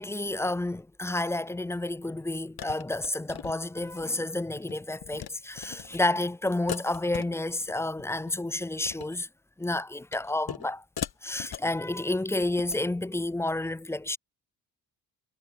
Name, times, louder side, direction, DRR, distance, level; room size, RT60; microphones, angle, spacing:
voice 1, 0.0-9.3 9.6-10.8 11.2-14.2, left 2 dB, 5° left, 0.4 m, -30 dB
sound 1, 1.7-1.8 2.6-4.1 4.4-4.7 5.0-5.3 5.6-6.0 6.7-7.7 8.0-8.3 8.7-9.2 10.1-10.7 11.0-11.8 12.4-12.8, left 9 dB, 60° left, 5.3 m, -39 dB
supercardioid pair, 70°, 42 cm